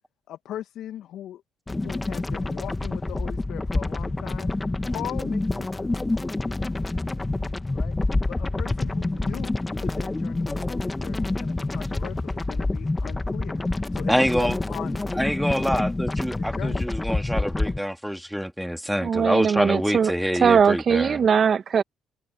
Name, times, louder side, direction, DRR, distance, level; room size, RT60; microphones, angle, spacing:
voice 1, 0.3-1.4 1.8-4.5 4.9-6.1 7.7-7.9 8.3-13.6 13.9-15.1 15.5-15.8 16.4-16.9, left 12 dB, 65° left, 1.9 m, -39 dB
sound 1, 1.7-17.8, left 2 dB, 20° left, 2.0 m, -27 dB
voice 2, 14.1-14.6 15.2-21.2, equal, ahead, 2.3 m, -26 dB
voice 3, 19.0-20.1 20.4-21.8, right 7 dB, 50° right, 1.7 m, -20 dB
hypercardioid pair, 55°, 0 cm